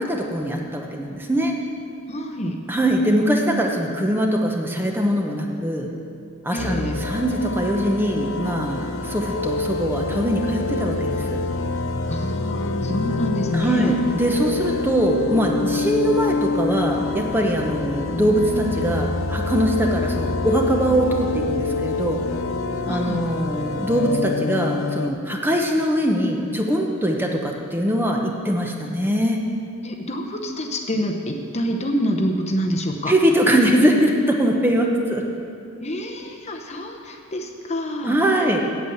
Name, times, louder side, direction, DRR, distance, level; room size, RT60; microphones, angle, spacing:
voice 1, 0.0-1.5 2.4-5.9 6.4-11.4 12.9-13.0 13.5-22.2 22.9-29.4 33.1-35.2 38.0-38.6, right 1 dB, 10° right, 1 dB, 0.9 m, -22 dB
voice 2, 2.1-2.6 6.5-6.9 12.1-13.9 22.9-23.2 29.8-33.1 35.8-38.2, equal, 30° left, 3 dB, 0.8 m, -27 dB
sound 1, 6.6-25.1, left 3 dB, 80° left, 0.6 m, -26 dB
8.5 x 8.2 x 7.8 m, 2.4 s
head